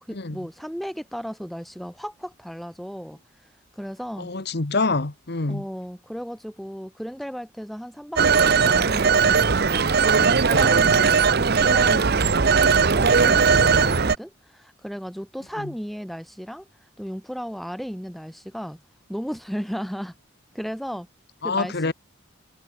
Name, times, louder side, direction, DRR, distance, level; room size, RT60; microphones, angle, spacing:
voice 1, 0.1-3.2 3.7-4.3 5.5-16.7 17.0-18.8 19.1-20.1 20.5-21.1 21.4-21.9, equal, ahead, 5.0 m, -35 dB
voice 2, 4.3-5.6 21.4-21.9, left 3 dB, 55° left, 1.2 m, -25 dB
Telephone, 8.2-14.2, right 5 dB, 50° right, 0.9 m, -18 dB
head